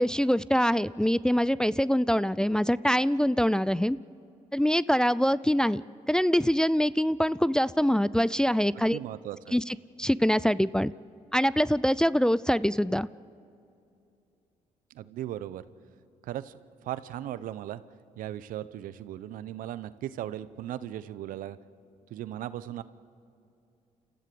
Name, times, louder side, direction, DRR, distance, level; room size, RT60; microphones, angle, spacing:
voice 1, 0.0-4.0 4.5-5.8 6.1-9.0 9.5-10.9 11.3-13.1, equal, 5° left, 17 dB, 0.4 m, -24 dB
voice 2, 8.7-9.6 14.9-15.6 16.2-17.8 18.2-21.6 22.1-22.8, right 12 dB, 75° right, 15 dB, 0.8 m, -37 dB
29.0 x 14.5 x 7.0 m, 2.6 s
supercardioid pair, 65°, 14 cm